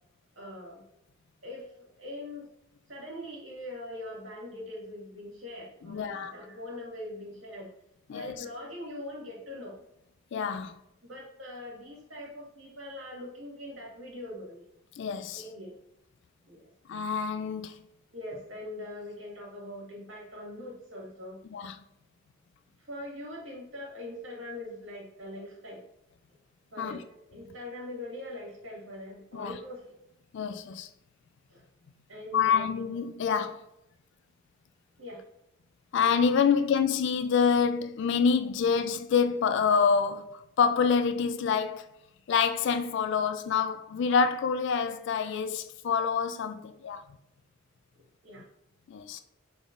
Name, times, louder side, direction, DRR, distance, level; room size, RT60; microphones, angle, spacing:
voice 1, 0.4-0.8 1.4-2.5 2.9-7.7 8.1-9.8 11.0-14.7 15.3-15.7 16.5-16.6 18.1-21.4 22.8-25.9 26.7-29.9 31.5-31.6 32.1-32.7 35.0-35.2 48.2-48.5, left 1 dB, 75° right, 1.9 m, -42 dB
voice 2, 5.9-6.3 8.1-8.3 10.3-10.8 15.0-15.4 16.9-17.8 21.5-21.8 26.8-27.0 29.3-29.6 30.3-30.9 32.3-33.6 35.9-41.9 42.3-47.0 48.9-49.2, left 6 dB, 65° left, 0.3 m, -27 dB
6.0 x 3.5 x 2.5 m
head